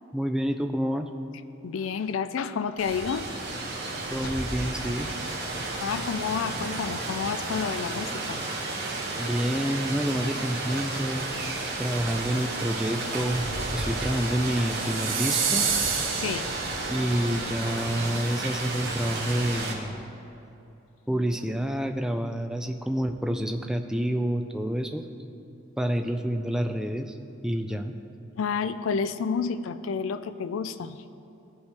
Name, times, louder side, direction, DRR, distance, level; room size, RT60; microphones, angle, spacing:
voice 1, 0.1-1.1 4.1-5.1 9.2-11.2 11.8-13.4 13.7-15.7 16.9-20.0 21.1-25.1 25.8-27.2 27.4-27.9, equal, 5° right, 6 dB, 0.3 m, -28 dB
voice 2, 1.6-3.3 5.8-8.4 16.2-16.9 28.4-31.0, left 6 dB, 80° left, 12 dB, 0.4 m, -30 dB
Rain, 2.8-19.7, right 2 dB, 50° right, 1.3 m, -32 dB
sound 1, 14.7-17.1, right 6 dB, 80° right, 1.0 m, -28 dB
15.5 x 5.4 x 3.3 m, 2.8 s
head